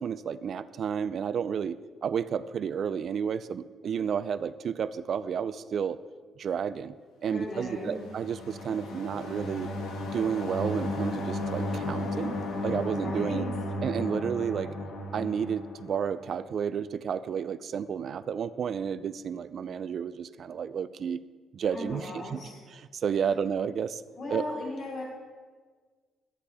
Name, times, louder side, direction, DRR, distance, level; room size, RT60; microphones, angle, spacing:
voice 1, 0.0-6.0 6.4-6.9 7.2-9.7 10.1-13.4 13.8-14.7 15.1-21.2 21.5-24.0 24.3-24.4, right 7 dB, 60° right, 15 dB, 0.4 m, -31 dB
voice 2, 7.2-8.0 13.0-13.5 21.7-22.6 24.2-25.0, left 2 dB, 55° left, -5 dB, 3.7 m, -37 dB
sound 1, 7.7-16.4, left 1 dB, 85° left, 1.6 m, -34 dB
13.0 x 9.9 x 3.5 m, 1.5 s
cardioid pair, 90°, 0 cm